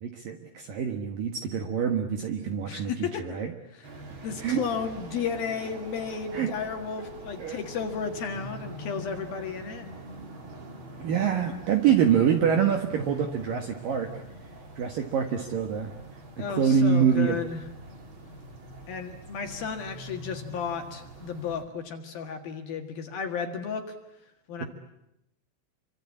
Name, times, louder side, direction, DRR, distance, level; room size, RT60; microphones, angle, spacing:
voice 1, 0.0-3.5 4.4-4.6 6.3-6.5 7.4-7.6 11.0-14.1 14.8-15.9 16.4-17.4 24.6-24.7, right 7 dB, 65° right, 5 dB, 2.4 m, -25 dB
voice 2, 2.7-3.4 3.7-3.9 4.2-9.9 16.4-17.6 18.9-23.9 24.5-24.7, left 6 dB, 60° left, 5 dB, 2.9 m, -33 dB
sound 1, 3.8-21.6, right 1 dB, 30° right, 2.8 m, -43 dB
27.5 x 24.5 x 8.6 m, 0.84 s
omnidirectional pair, 5.7 m